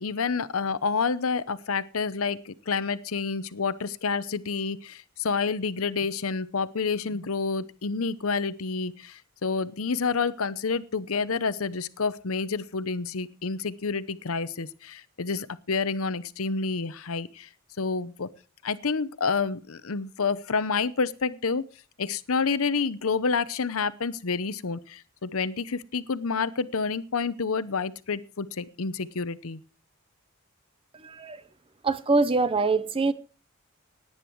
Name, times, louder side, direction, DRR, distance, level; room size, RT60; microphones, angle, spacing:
voice 1, 0.0-17.5 17.8-18.3 18.6-21.6 22.0-29.6, left 4 dB, 70° left, 0.8 m, -29 dB
voice 2, 30.9-31.4 31.8-33.1, right 3 dB, 25° right, 0.7 m, -24 dB
17.5 x 9.7 x 4.6 m
head